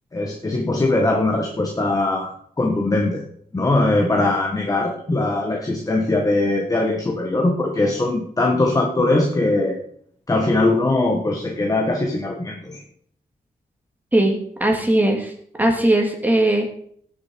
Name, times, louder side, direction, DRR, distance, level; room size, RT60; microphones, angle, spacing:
voice 1, 0.1-3.2 3.5-9.8 10.3-12.8, left 2 dB, 20° left, 1 dB, 1.5 m, -21 dB
voice 2, 14.1-15.3 15.6-16.7, right 1 dB, 10° right, 2 dB, 2.5 m, -19 dB
18.0 x 6.9 x 4.6 m, 0.62 s
wide cardioid pair, 170°, 16 cm